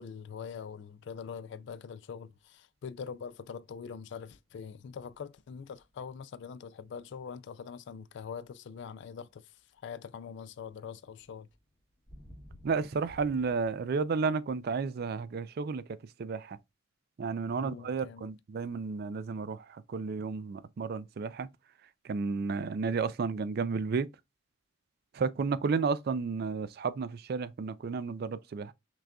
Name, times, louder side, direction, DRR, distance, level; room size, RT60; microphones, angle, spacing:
voice 1, 0.0-11.5 17.6-18.3, left 6 dB, 65° left, 0.3 m, -43 dB
sound 1, 4.4-6.9 8.0-8.5 9.4-9.9 10.2-13.7, equal, 15° left, 0.9 m, -55 dB
voice 2, 12.6-16.6 17.2-21.5 22.0-24.1 25.1-28.7, right 4 dB, 50° right, 0.4 m, -32 dB
5.9 x 2.6 x 2.2 m
head